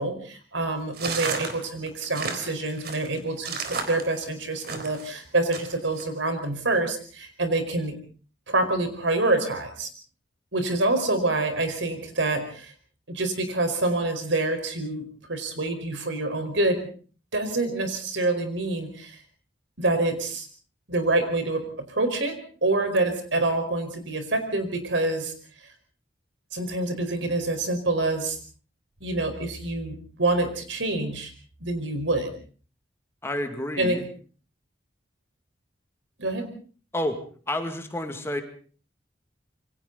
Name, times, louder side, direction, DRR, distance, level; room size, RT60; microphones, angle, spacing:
voice 1, 0.0-7.9 8.5-9.9 10.5-12.7 13.1-16.8 17.3-19.2 19.8-20.5 20.9-25.3 26.5-28.4 29.0-31.3 31.6-32.3 33.8-34.0 36.2-36.5, right 2 dB, 90° right, 7 dB, 4.8 m, -26 dB
sound 1, 0.9-5.1 5.5-6.0, right 4 dB, 55° right, 3.8 m, -32 dB
voice 2, 33.2-34.0 36.9-37.2 37.5-38.4, left 1 dB, 15° left, 6 dB, 2.3 m, -29 dB
27.5 x 23.5 x 4.1 m, 0.42 s
head